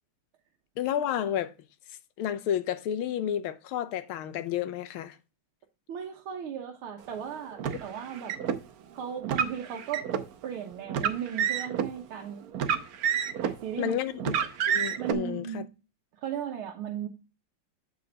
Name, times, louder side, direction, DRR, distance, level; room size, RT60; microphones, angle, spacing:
voice 1, 0.8-1.5 2.2-5.2 7.6-7.8 13.8-14.3 14.7-15.6, left 10 dB, 80° left, 1.5 m, -31 dB
voice 2, 5.9-8.4 8.9-10.1 10.4-12.5 13.3-14.0 15.0-15.7 16.2-17.1, right 9 dB, 85° right, 1.9 m, -36 dB
Car, 7.6-8.6 9.2-10.3 10.9-11.9 12.5-13.6 14.2-15.1, right 8 dB, 65° right, 0.9 m, -28 dB
7.8 x 5.5 x 3.9 m
omnidirectional pair, 2.3 m